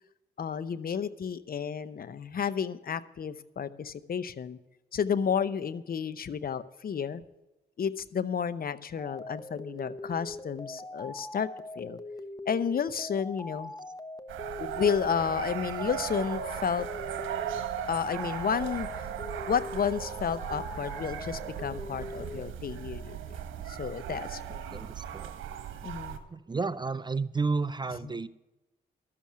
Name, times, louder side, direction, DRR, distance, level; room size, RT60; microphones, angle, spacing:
voice 1, 0.4-4.6 4.9-7.2 7.8-11.5 11.8-12.0 12.5-13.7 14.6-16.9 17.9-19.1 19.5-23.4 23.7-24.9 25.8-26.2, left 7 dB, 50° left, 15 dB, 0.7 m, -31 dB
sound 1, 9.0-22.5, left 2 dB, 20° left, 1.1 m, -42 dB
sound 2, 14.3-26.2, right 10 dB, 80° right, 1.2 m, -37 dB
voice 2, 24.7-25.4 26.3-28.3, right 4 dB, 20° right, 16 dB, 0.5 m, -32 dB
13.0 x 7.3 x 7.4 m, 1.0 s
supercardioid pair, 60°, 20 cm